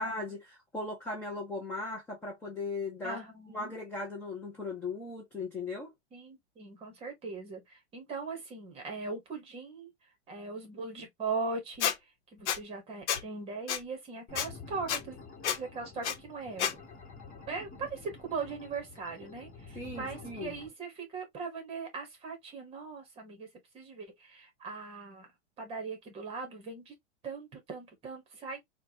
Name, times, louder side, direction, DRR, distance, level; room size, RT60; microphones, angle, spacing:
voice 1, 0.0-3.2 3.5-5.9 19.8-20.5, left 3 dB, 5° left, 0.5 m, -38 dB
voice 2, 3.0-3.7 6.1-15.2 15.6-16.8 17.5-23.5 23.7-25.3 25.6-26.9 27.2-28.6, right 4 dB, 15° right, 1.1 m, -40 dB
Squeak, 11.8-11.9 12.5-12.6 13.1-13.2 13.7-13.8 14.3-14.5 14.9-15.0 15.4-15.6 16.0-16.1 16.6-16.7, left 9 dB, 90° left, 0.9 m, -29 dB
sound 1, 14.3-20.7, left 4 dB, 25° left, 1.6 m, -49 dB
4.4 x 2.2 x 2.7 m
supercardioid pair, 165°, 33 cm